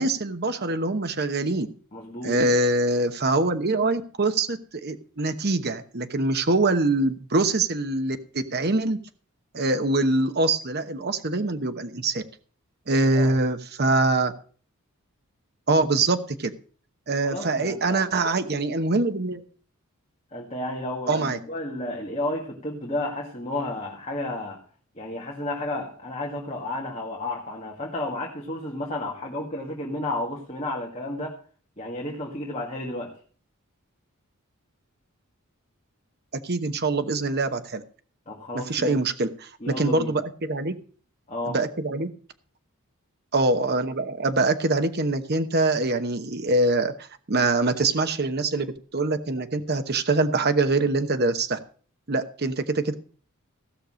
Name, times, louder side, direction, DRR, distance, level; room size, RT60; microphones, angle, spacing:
voice 1, 0.0-1.7 2.2-9.0 9.5-12.2 12.9-14.3 15.7-16.5 17.1-19.4 21.1-21.4 36.3-37.8 38.5-40.8 41.5-42.1 43.3-51.6 52.1-52.9, right 2 dB, 45° right, 9 dB, 1.0 m, -24 dB
voice 2, 1.9-2.4 13.1-13.3 17.2-18.1 20.3-24.6 25.0-31.4 31.8-33.2 38.3-39.0 39.6-40.1 41.3-41.6, left 1 dB, 30° left, -2 dB, 2.1 m, -32 dB
16.0 x 6.7 x 6.3 m, 0.42 s
head